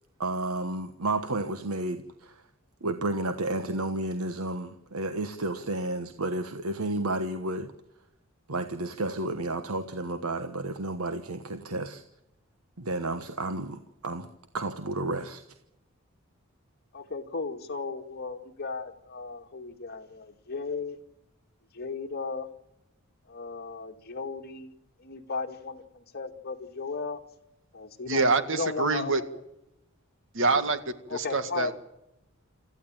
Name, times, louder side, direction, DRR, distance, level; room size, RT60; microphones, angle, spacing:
voice 1, 0.2-2.4 2.8-7.7 8.5-12.0 12.8-14.3 14.5-15.4, right 2 dB, 90° right, 1.3 m, -31 dB
voice 2, 16.9-21.0 21.7-22.5 23.3-24.7 25.0-27.2 27.7-29.3 31.1-31.7, left 4 dB, 50° left, 2.0 m, -35 dB
voice 3, 28.1-29.2 30.3-30.8 31.1-31.7, right 3 dB, 65° right, 1.9 m, -25 dB
27.5 x 14.5 x 8.9 m
head